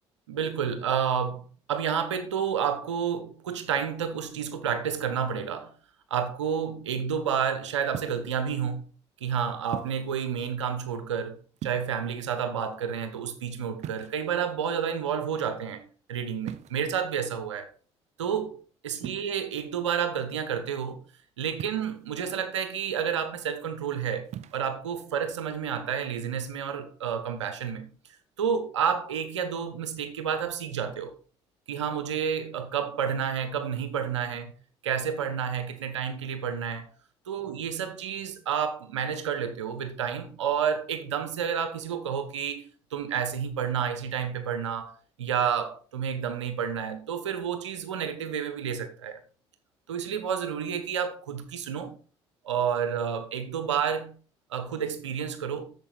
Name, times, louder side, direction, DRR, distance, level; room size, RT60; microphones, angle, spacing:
voice 1, 0.3-5.7 6.1-8.8 9.2-15.8 16.1-17.7 18.2-18.6 18.8-21.0 21.4-27.9 28.4-31.1 31.7-34.5 34.8-36.9 37.3-44.9 45.2-49.2 49.9-52.0 52.4-54.1 54.5-55.7, right 7 dB, 85° right, 1.0 m, -30 dB
sound 1, 7.9-8.4 9.7-10.1 11.6-12.2 13.8-14.5 16.4-17.0 19.0-19.3 21.6-22.1 24.2-24.7, right 10 dB, 50° right, 0.6 m, -39 dB
8.3 x 6.8 x 3.4 m
hypercardioid pair, 55°, 15 cm